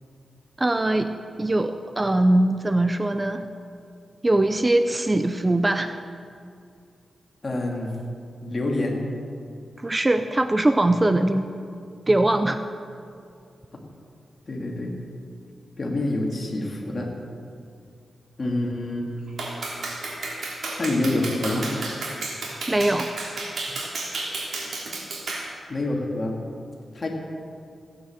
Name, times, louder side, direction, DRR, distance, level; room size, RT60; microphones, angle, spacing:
voice 1, 0.6-1.1 1.4-3.5 4.2-6.0 9.8-11.5 12.1-12.6 22.7-23.1, right 1 dB, 20° right, 9 dB, 0.5 m, -21 dB
voice 2, 7.4-7.9 8.4-9.0 14.5-14.9 15.8-17.1 18.4-19.1 20.8-21.7 25.7-26.4 26.9-27.1, left 2 dB, 35° left, -1 dB, 2.7 m, -26 dB
Clapping, 19.4-25.5, right 2 dB, 65° right, 3.2 m, -32 dB
15.5 x 9.5 x 7.4 m, 2.4 s
wide cardioid pair, 100°, 0 cm